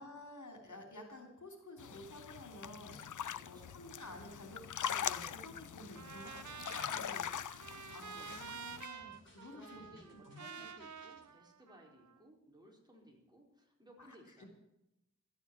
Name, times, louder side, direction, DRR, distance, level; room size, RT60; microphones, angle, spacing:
voice 1, 0.0-7.2 7.5-9.8 10.1-10.5 14.0-14.1 14.4-14.5, left 1 dB, 75° left, 3 dB, 3.2 m, -52 dB
sound 1, 1.8-8.9, left 9 dB, 90° left, 0.5 m, -42 dB
voice 2, 3.3-3.7 6.9-7.3 8.1-8.3 9.5-14.5, right 1 dB, 15° right, -1 dB, 4.5 m, -60 dB
sound 2, 5.8-11.3, left 1 dB, 40° left, 5.0 m, -64 dB
Trumpet, 5.9-12.2, right 7 dB, 70° right, 0.8 m, -50 dB
13.5 x 9.2 x 8.9 m, 0.88 s
wide cardioid pair, 60°, 30 cm